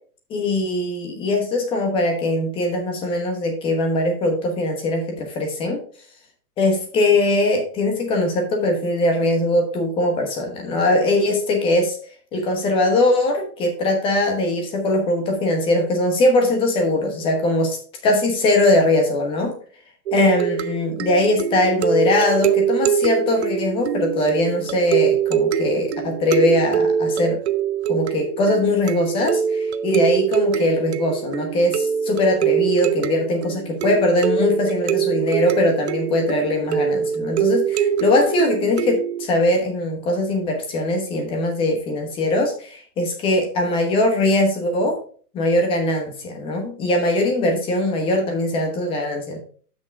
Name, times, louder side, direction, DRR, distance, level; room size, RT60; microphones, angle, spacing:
voice 1, 0.3-5.8 6.6-12.0 12.3-17.8 18.0-19.5 20.1-27.4 27.9-45.0 45.3-49.4, left 1 dB, 10° left, 3 dB, 1.0 m, -21 dB
sound 1, 20.1-39.3, right 8 dB, 45° right, 0.6 m, -23 dB
7.3 x 6.2 x 4.6 m, 0.44 s
hypercardioid pair, 160°, 47 cm